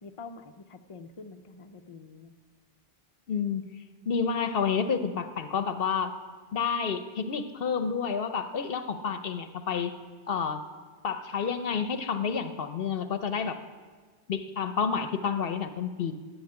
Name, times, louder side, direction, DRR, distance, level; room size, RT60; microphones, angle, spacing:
voice 1, 0.0-2.3, left 4 dB, 35° left, 6 dB, 0.7 m, -46 dB
voice 2, 3.3-3.6 4.1-6.1 6.5-9.9 10.3-10.6 11.0-13.6 14.3-16.1, left 6 dB, 70° left, 9 dB, 0.9 m, -29 dB
11.5 x 8.6 x 8.7 m, 1.5 s
omnidirectional pair, 1.0 m